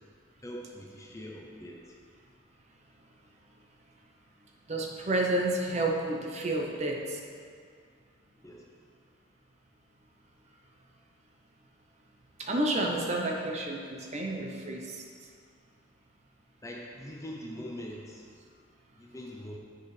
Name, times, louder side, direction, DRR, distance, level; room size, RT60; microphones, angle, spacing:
voice 1, 0.4-1.8 8.4-8.6 16.6-18.3 19.0-19.6, equal, 15° left, -1 dB, 0.5 m, -42 dB
voice 2, 4.7-7.2 12.4-14.9, right 1 dB, 30° right, 0 dB, 0.7 m, -30 dB
7.9 x 6.7 x 3.2 m, 2.1 s
head